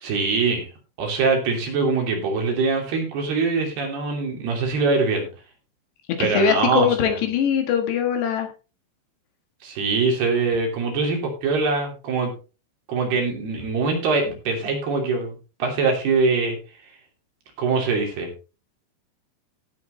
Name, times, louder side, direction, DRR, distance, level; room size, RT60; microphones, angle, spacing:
voice 1, 0.0-0.7 1.0-5.3 6.2-7.2 9.6-12.3 12.9-15.3 15.6-16.6 17.6-18.3, right 4 dB, 60° right, 1 dB, 4.9 m, -23 dB
voice 2, 6.2-8.5, left 7 dB, 70° left, 5 dB, 3.4 m, -21 dB
16.0 x 8.5 x 3.2 m, 0.32 s
omnidirectional pair, 5.5 m